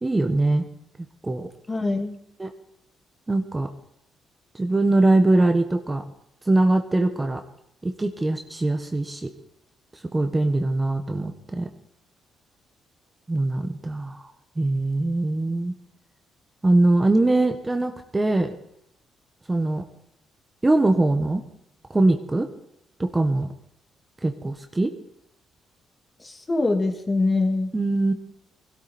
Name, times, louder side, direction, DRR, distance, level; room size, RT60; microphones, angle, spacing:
voice 1, 0.0-0.7 1.2-1.5 2.4-2.5 3.3-3.7 4.5-6.0 6.4-7.4 7.8-9.3 10.1-11.7 13.3-14.3 14.6-15.7 16.6-18.5 19.5-19.8 20.6-21.4 21.9-22.5 23.0-23.5 24.2-24.9 27.7-28.1, right 2 dB, 20° right, 6 dB, 1.3 m, -22 dB
voice 2, 1.7-2.2 26.2-27.7, left 2 dB, 25° left, 4 dB, 2.2 m, -24 dB
20.5 x 12.5 x 4.3 m, 0.75 s
cardioid pair, 90°, 0 cm